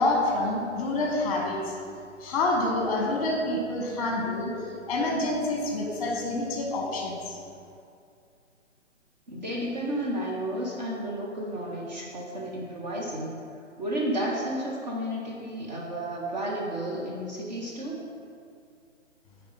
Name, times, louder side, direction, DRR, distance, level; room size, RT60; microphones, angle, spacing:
voice 1, 0.0-1.7 2.2-4.5 4.9-7.4, left 2 dB, 30° left, -1 dB, 1.1 m, -27 dB
voice 2, 9.3-13.4 13.8-18.0, right 1 dB, 35° right, -3 dB, 0.8 m, -32 dB
4.9 x 4.6 x 5.4 m, 2.4 s
hypercardioid pair, 155°, 37 cm